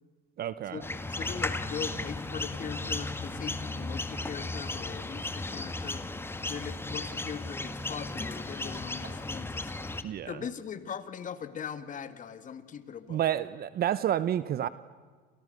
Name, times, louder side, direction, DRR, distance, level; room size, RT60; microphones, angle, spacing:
voice 1, 0.4-0.8 10.0-10.4 13.1-14.7, right 11 dB, 45° right, 16 dB, 0.9 m, -29 dB
sound 1, 0.8-10.0, left 2 dB, 10° left, 1.7 m, -35 dB
voice 2, 1.1-6.0 6.5-9.7 10.1-13.2, left 7 dB, 40° left, 12 dB, 2.2 m, -40 dB
sound 2, 8.5-9.4, right 5 dB, 60° right, 6.1 m, -54 dB
30.0 x 28.0 x 6.7 m, 1.5 s
cardioid pair, 125°, 21 cm